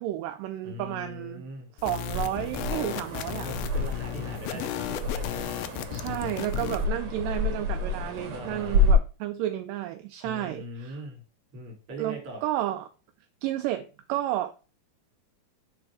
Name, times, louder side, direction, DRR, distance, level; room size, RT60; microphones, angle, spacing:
voice 1, 0.0-1.4 1.8-3.5 5.9-11.1 12.0-12.9 13.4-14.5, right 13 dB, 80° right, 2.0 m, -32 dB
voice 2, 0.6-1.7 3.4-5.5 6.8-7.2 8.3-8.9 10.2-11.2 11.5-12.4, equal, 40° right, 2.9 m, -41 dB
sound 1, 1.8-6.8, left 14 dB, 80° left, 2.4 m, -35 dB
sound 2, 2.1-8.9, left 1 dB, 60° right, 2.3 m, -29 dB
6.2 x 5.0 x 4.8 m
omnidirectional pair, 4.2 m